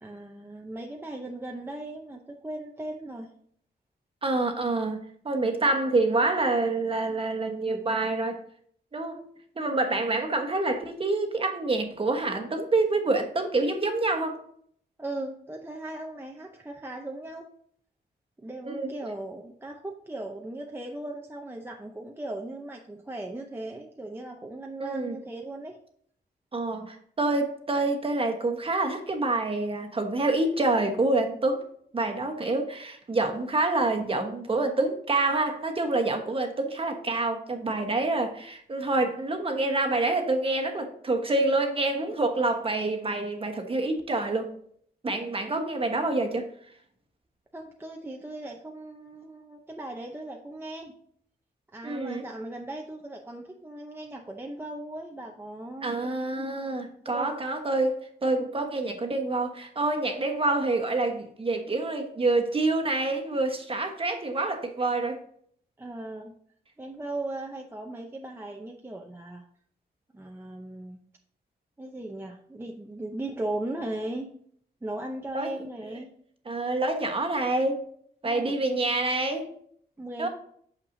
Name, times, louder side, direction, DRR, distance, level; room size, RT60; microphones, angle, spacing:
voice 1, 0.0-3.3 15.0-17.5 18.4-25.8 47.5-50.9 51.7-55.9 57.1-57.3 65.8-66.3 66.8-69.4 70.1-71.0 71.8-74.3 74.8-76.1 78.2-78.5 80.0-80.3, right 2 dB, 15° right, 1 dB, 0.6 m, -37 dB
voice 2, 4.2-8.4 8.9-9.2 9.5-14.4 18.6-18.9 24.8-25.2 26.5-31.7 31.9-44.5 45.0-46.5 51.8-52.2 55.8-65.2 75.3-75.5 76.5-77.8 78.2-79.5 80.2-80.3, right 2 dB, 30° right, 4 dB, 1.2 m, -27 dB
8.6 x 6.6 x 2.7 m, 0.63 s
wide cardioid pair, 140°, 18 cm